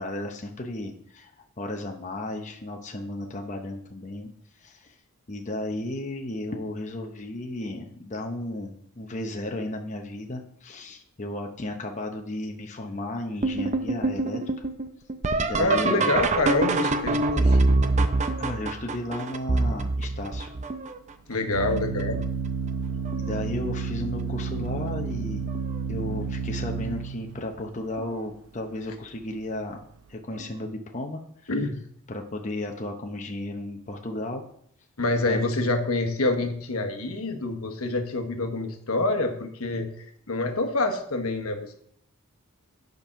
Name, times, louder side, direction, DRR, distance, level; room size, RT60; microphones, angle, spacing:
voice 1, 0.0-4.3 4.6-5.0 5.3-14.4 15.4-16.1 18.4-20.5 23.1-25.5 25.9-29.8 30.1-31.7 32.1-34.4 35.2-35.4, left 1 dB, 35° left, 2 dB, 0.8 m, -34 dB
sound 1, 13.4-21.1 21.8-22.3 22.7-23.4 24.7-24.8 25.5-25.8 28.0-28.1 30.4-30.5, right 2 dB, 30° right, 0.5 m, -25 dB
voice 2, 15.6-17.6 21.3-22.2 31.5-31.8 35.0-41.7, left 2 dB, 75° left, 5 dB, 1.2 m, -26 dB
Organ, 19.7-30.1, right 5 dB, 80° right, 0.9 m, -32 dB
8.7 x 5.3 x 5.7 m, 0.66 s
head